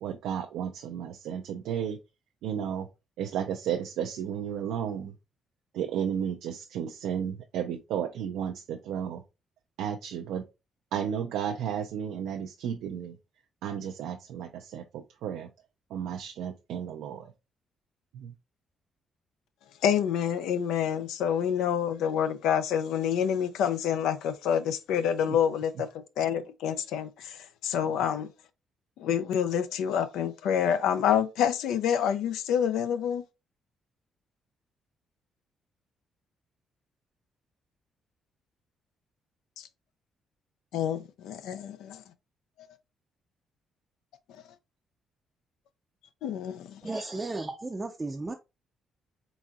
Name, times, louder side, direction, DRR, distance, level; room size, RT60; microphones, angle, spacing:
voice 1, 0.0-2.0 2.4-2.9 3.2-5.1 5.7-9.2 9.8-10.4 10.9-13.2 13.6-15.5 15.9-17.3 18.1-18.3 25.3-25.4 27.8-28.0, right 8 dB, 90° right, 0.4 m, -33 dB
voice 2, 19.8-25.9 26.2-28.3 29.0-33.2 39.6-39.7 40.7-42.0 46.2-46.8, left 8 dB, 85° left, 0.4 m, -27 dB
voice 3, 46.8-48.3, right 2 dB, 20° right, 0.4 m, -34 dB
4.0 x 3.5 x 2.3 m
cardioid pair, 90°, 0 cm